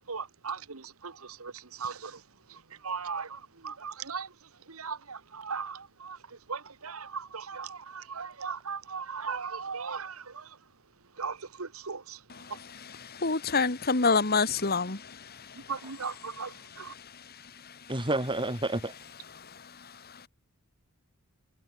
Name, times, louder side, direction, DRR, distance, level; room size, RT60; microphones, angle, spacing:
voice 1, 0.1-2.2 2.5-4.3 4.7-10.6 11.2-12.2 15.7-16.9, right 5 dB, 80° right, 1.5 m, -38 dB
voice 2, 12.3-15.7 16.6-17.9 19.4-20.3, left 4 dB, 45° left, 2.2 m, -30 dB
voice 3, 17.9-18.9, right 2 dB, 25° right, 4.0 m, -29 dB
head